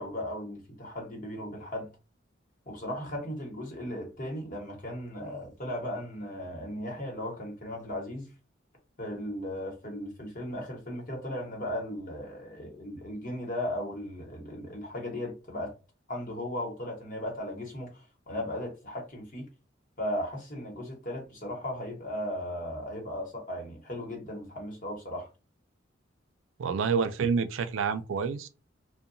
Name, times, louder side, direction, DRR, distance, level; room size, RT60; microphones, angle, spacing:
voice 1, 0.0-1.9 2.7-8.3 9.0-15.7 16.1-19.5 20.0-25.3, left 1 dB, 45° left, 1.0 m, -36 dB
voice 2, 26.6-28.5, right 5 dB, 85° right, 0.4 m, -28 dB
2.8 x 2.1 x 2.6 m
head